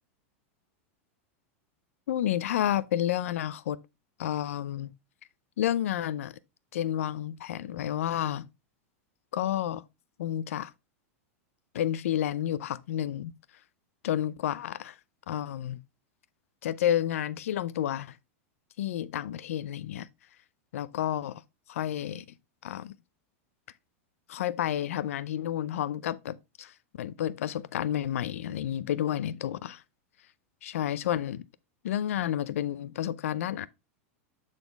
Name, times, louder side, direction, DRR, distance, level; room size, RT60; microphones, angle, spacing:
voice 1, 2.1-3.8 4.2-4.9 5.6-6.4 6.7-8.5 9.3-9.8 10.2-10.7 11.7-13.3 14.0-14.9 15.3-15.8 16.6-18.2 18.8-20.1 20.7-21.4 21.7-22.3 22.6-22.9 24.3-29.8 30.6-31.4 31.8-33.7, left 11 dB, 85° left, 0.5 m, -30 dB
9.0 x 4.1 x 3.4 m
supercardioid pair, 135°, 7 cm